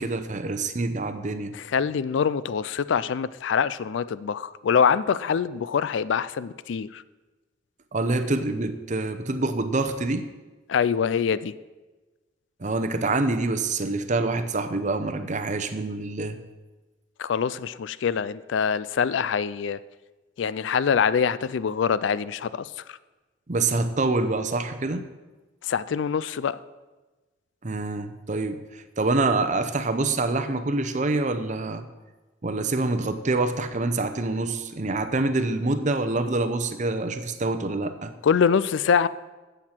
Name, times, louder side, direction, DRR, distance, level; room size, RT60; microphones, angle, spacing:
voice 1, 0.0-1.5 7.9-10.2 12.6-16.4 23.5-25.0 27.6-31.8 32.4-38.1, right 2 dB, 40° right, 10 dB, 0.7 m, -26 dB
voice 2, 1.5-7.0 10.7-11.5 17.2-19.8 20.4-23.0 25.6-26.6 38.2-39.1, left 6 dB, 70° left, 17 dB, 0.4 m, -24 dB
13.5 x 8.0 x 4.5 m, 1.2 s
head